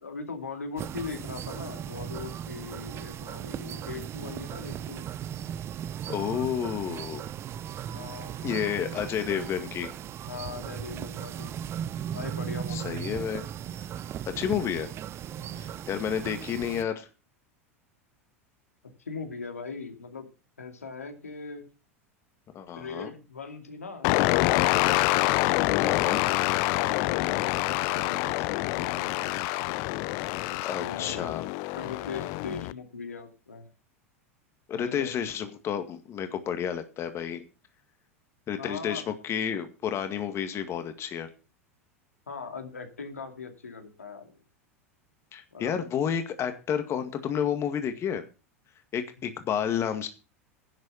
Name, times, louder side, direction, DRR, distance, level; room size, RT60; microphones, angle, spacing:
voice 1, 0.0-5.1 7.9-9.0 10.2-11.5 12.1-13.1 15.4-15.8 18.8-20.3 20.6-21.7 22.8-24.7 26.8-29.3 29.6-29.7 30.5-33.7 34.7-35.1 38.6-39.1 42.3-44.4 45.5-45.8, left 5 dB, 85° left, 5 dB, 2.5 m, -40 dB
sound 1, 0.8-16.8, right 10 dB, 35° right, 0.7 m, -37 dB
voice 2, 6.1-7.2 8.4-9.9 12.7-13.4 14.3-14.9 15.6-17.1 22.5-23.1 25.8-26.2 30.6-31.5 34.7-37.4 38.5-41.3 45.3-48.2 48.9-50.1, left 8 dB, 35° left, 8 dB, 2.0 m, -30 dB
sound 2, 24.0-32.7, left 21 dB, 50° left, 0.5 m, -26 dB
11.5 x 7.5 x 7.0 m, 0.33 s
figure-of-eight pair, 85°, 8 cm